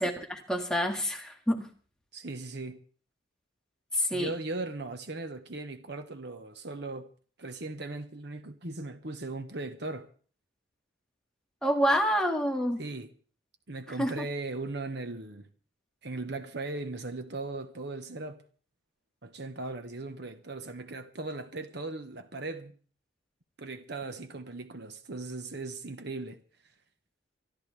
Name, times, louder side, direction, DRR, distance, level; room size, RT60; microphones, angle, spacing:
voice 1, 0.0-1.7 3.9-4.3 11.6-12.8 14.0-14.3, equal, 5° left, 1.9 m, -28 dB
voice 2, 2.1-2.8 4.1-7.1 7.4-10.1 12.8-13.1 13.7-15.5 16.0-18.4 19.2-22.7 23.6-26.4, right 2 dB, 55° right, 1.3 m, -38 dB
25.0 x 12.5 x 3.4 m
head